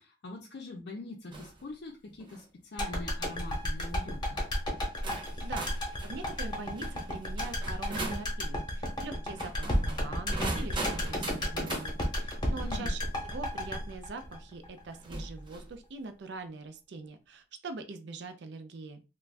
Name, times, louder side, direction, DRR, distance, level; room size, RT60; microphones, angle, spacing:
voice 1, 0.0-4.5 12.6-12.9, left 2 dB, 70° left, -2 dB, 0.5 m, -43 dB
sound 1, 1.3-1.6 2.1-2.5 3.3-3.6 4.4-4.5 5.0-8.3 9.3-11.9 13.6-13.7 15.0-15.7, right 2 dB, 30° right, 0.7 m, -40 dB
sound 2, 2.8-15.0 15.2-15.3, equal, 25° left, 0.8 m, -32 dB
voice 2, 5.4-13.0 13.2-19.0, right 3 dB, 70° right, 9 dB, 0.4 m, -43 dB
2.4 x 2.2 x 3.3 m, 0.31 s
head